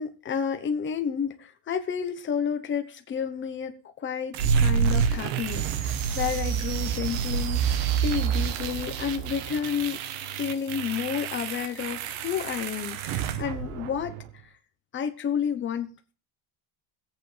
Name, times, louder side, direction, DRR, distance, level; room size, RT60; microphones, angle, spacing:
voice 1, 0.0-10.0 10.4-14.1 14.9-16.1, left 7 dB, 25° left, 1.0 m, -31 dB
sound 1, 4.3-14.3, right 7 dB, 80° right, 1.3 m, -28 dB
21.5 x 8.4 x 3.4 m
cardioid pair, 170°, 48 cm